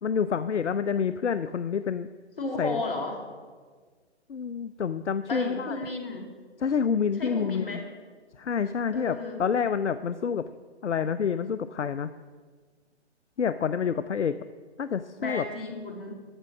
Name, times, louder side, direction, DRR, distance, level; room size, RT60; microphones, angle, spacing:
voice 1, 0.0-2.1 2.6-2.8 4.3-5.9 6.6-7.8 8.4-10.5 10.8-12.1 13.4-14.4 14.8-15.4, left 7 dB, 80° left, 13 dB, 0.5 m, -28 dB
voice 2, 2.4-3.2 5.3-6.3 7.2-7.8 8.9-9.4 15.2-16.1, left 2 dB, 50° left, 3 dB, 2.4 m, -33 dB
13.0 x 6.4 x 7.3 m, 1.5 s
figure-of-eight pair, 135°, 35 cm